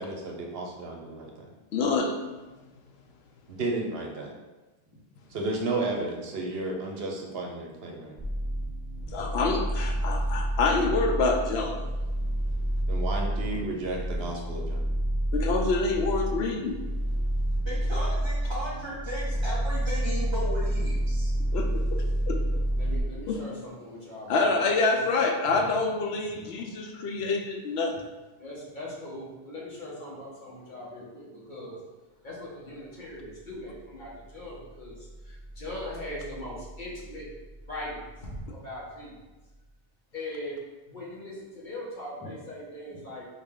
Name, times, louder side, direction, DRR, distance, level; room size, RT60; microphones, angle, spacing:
voice 1, 0.0-1.5 3.5-4.3 5.3-8.1 12.9-14.9, right 2 dB, 70° right, 0 dB, 0.9 m, -33 dB
voice 2, 1.7-2.2 9.1-11.8 15.3-16.8 21.5-22.4 23.3-23.4 24.3-28.0, left 3 dB, 75° left, 3 dB, 0.8 m, -27 dB
sound 1, 8.2-23.0, right 1 dB, 5° left, 0.7 m, -29 dB
voice 3, 17.6-21.3 25.4-25.6 26.3-26.5 42.9-43.0, equal, 25° right, -7 dB, 1.4 m, -36 dB
voice 4, 22.7-25.3 26.4-27.1 28.4-37.3 37.6-39.2 40.1-40.6 40.9-43.3, left 1 dB, 50° left, -6 dB, 1.3 m, -40 dB
3.9 x 3.2 x 3.6 m, 1.2 s
omnidirectional pair, 1.1 m